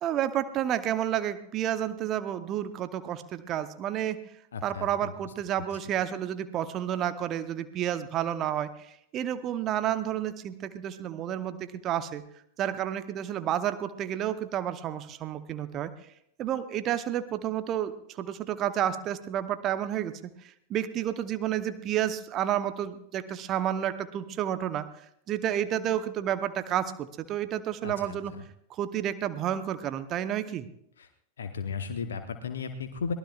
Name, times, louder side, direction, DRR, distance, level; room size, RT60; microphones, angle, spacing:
voice 1, 0.0-4.2 4.6-12.2 12.6-15.9 16.4-28.3 28.7-30.7, right 11 dB, 35° right, 12 dB, 0.9 m, -30 dB
voice 2, 4.5-5.1 27.8-28.2 31.0-31.1 31.4-33.1, left 5 dB, 65° left, 7 dB, 1.0 m, -35 dB
23.0 x 18.5 x 2.4 m, 0.74 s
figure-of-eight pair, 90°, 0 cm